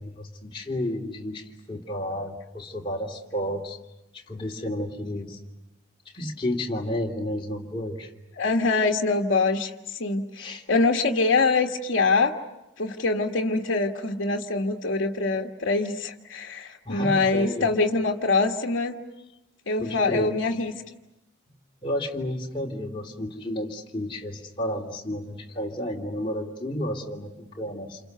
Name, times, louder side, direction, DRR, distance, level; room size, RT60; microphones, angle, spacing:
voice 1, 0.0-3.8 4.1-5.4 6.1-8.1 10.4-10.6 16.8-17.7 19.8-20.3 21.8-28.0, left 1 dB, 25° left, 0 dB, 3.0 m, -31 dB
voice 2, 8.4-12.3 12.8-19.0 19.7-20.7, left 3 dB, 75° left, 0 dB, 1.6 m, -24 dB
29.5 x 29.0 x 6.8 m, 0.95 s
head